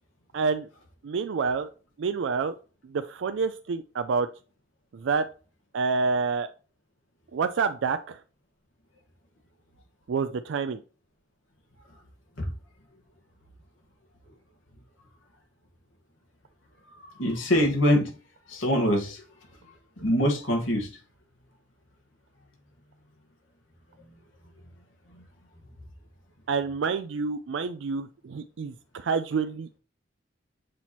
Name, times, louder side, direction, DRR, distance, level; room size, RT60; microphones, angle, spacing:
voice 1, 0.3-0.7 1.0-1.7 2.0-2.6 2.8-4.3 4.9-5.2 5.7-6.5 7.3-8.2 10.1-10.8 26.5-29.8, right 5 dB, 70° right, 0.4 m, -28 dB
voice 2, 17.2-18.1 18.5-19.2 20.0-20.9, equal, 85° left, 1.6 m, -23 dB
7.5 x 3.0 x 4.2 m
head